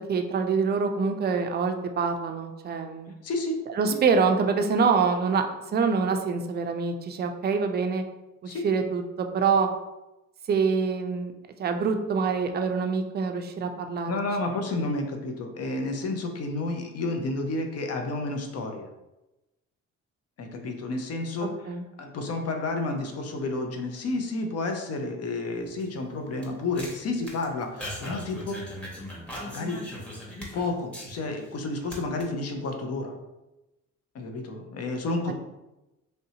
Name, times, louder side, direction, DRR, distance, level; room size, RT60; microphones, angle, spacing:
voice 1, 0.1-3.1 3.8-5.4 5.7-8.0 8.6-9.7 10.5-11.3 11.6-14.1 14.4-14.6 21.7-21.8 35.3-35.4, right 5 dB, 35° right, 5 dB, 0.4 m, -25 dB
voice 2, 3.2-3.6 3.9-4.0 8.5-8.7 14.1-18.9 20.4-28.6 29.4-29.8 30.5-33.1 34.1-35.3, left 2 dB, 55° left, 4 dB, 0.6 m, -31 dB
sound 1, 25.6-31.5 31.8-32.2, equal, 5° left, 0.9 m, -40 dB
3.2 x 2.6 x 2.8 m, 0.99 s
cardioid pair, 90°, 31 cm